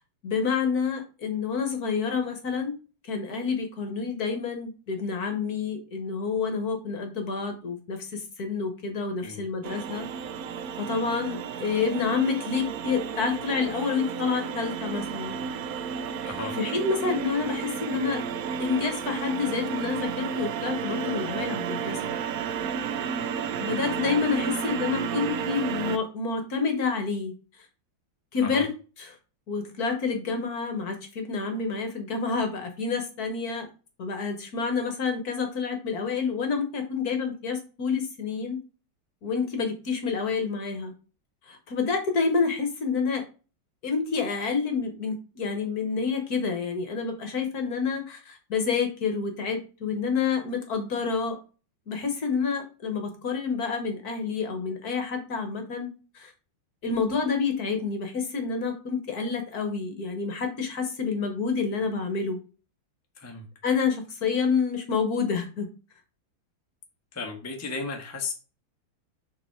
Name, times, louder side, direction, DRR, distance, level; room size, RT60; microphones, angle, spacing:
voice 1, 0.2-2.7 3.0-10.1 10.8-15.4 16.6-18.2 18.6-22.1 23.6-27.3 28.3-28.7 29.5-33.7 34.0-38.6 39.2-40.9 41.5-43.2 43.8-51.4 51.9-56.3 56.8-62.4 63.6-65.7, left 5 dB, 55° left, 5 dB, 1.6 m, -28 dB
sound 1, 9.6-26.0, right 7 dB, 70° right, 0.8 m, -32 dB
voice 2, 16.2-16.5 28.4-28.6 63.1-63.5 67.1-68.3, left 3 dB, 10° left, 2 dB, 0.9 m, -34 dB
6.8 x 3.8 x 4.5 m, 0.34 s
omnidirectional pair, 2.1 m